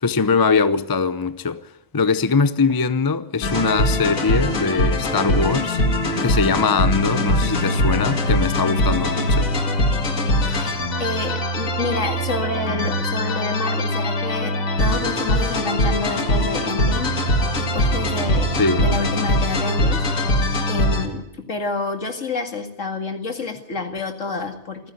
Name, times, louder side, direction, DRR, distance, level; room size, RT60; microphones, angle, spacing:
voice 1, 0.0-1.6 1.9-5.8 6.2-9.5 18.6-18.9, left 4 dB, 25° left, 0.6 m, -21 dB
sound 1, 3.4-21.1, left 1 dB, 80° left, 2.4 m, -21 dB
voice 2, 10.5-14.5 14.8-17.1 17.5-18.5 18.8-20.4 20.7-24.9, left 3 dB, 65° left, 2.4 m, -28 dB
27.5 x 10.0 x 9.5 m
omnidirectional pair, 1.4 m